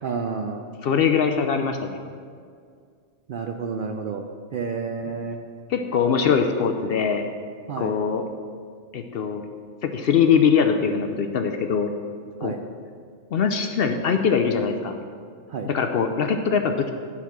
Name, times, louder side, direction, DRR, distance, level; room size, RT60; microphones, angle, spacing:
voice 1, 0.0-0.6 3.3-4.2 4.5-5.4 7.7-7.9 12.4-12.6 15.5-15.7, right 5 dB, 65° right, 4 dB, 0.5 m, -30 dB
voice 2, 0.8-2.0 5.7-7.2 7.8-8.2 8.9-9.4 9.8-11.9 12.4-12.5 13.3-14.9 15.7-16.9, left 6 dB, 65° left, 6 dB, 0.7 m, -22 dB
10.5 x 4.2 x 5.9 m, 2.1 s
omnidirectional pair, 1.3 m